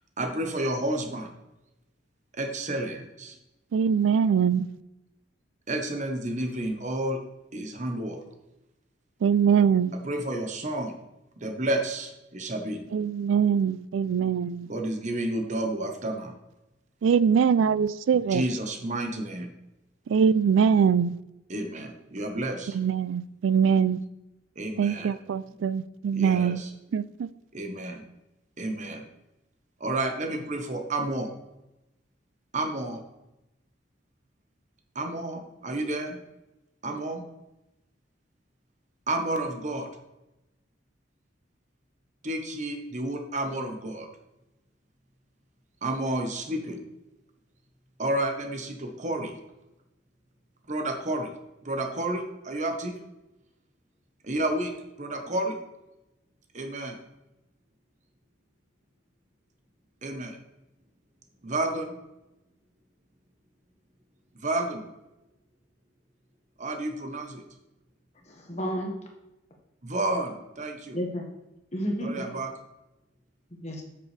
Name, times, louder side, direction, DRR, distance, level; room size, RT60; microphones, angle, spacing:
voice 1, 0.2-1.3 2.3-3.4 5.7-7.2 7.5-8.2 9.9-10.9 11.4-12.8 14.7-16.3 18.3-19.5 21.5-22.8 24.6-25.1 26.2-26.7 27.5-28.0 28.6-29.0 29.8-31.3 32.5-33.0 34.9-36.2 36.8-37.2 39.1-39.9 42.2-44.1 45.8-46.8 48.0-49.4 50.7-51.3 51.6-52.9 54.2-54.7 55.0-55.6 56.5-57.0 60.0-60.4 61.4-61.9 64.4-64.8 66.6-67.4 69.8-71.0 72.0-72.5, right 1 dB, 40° right, 1.1 m, -30 dB
voice 2, 3.7-4.7 9.2-9.9 12.9-14.7 17.0-18.4 20.1-21.2 22.7-24.0 24.8-26.6 26.9-27.3, right 7 dB, 85° right, 0.3 m, -23 dB
voice 3, 68.2-68.9 70.9-71.3 71.7-72.3 73.5-73.8, equal, 35° left, 1.6 m, -31 dB
8.0 x 6.9 x 3.3 m
head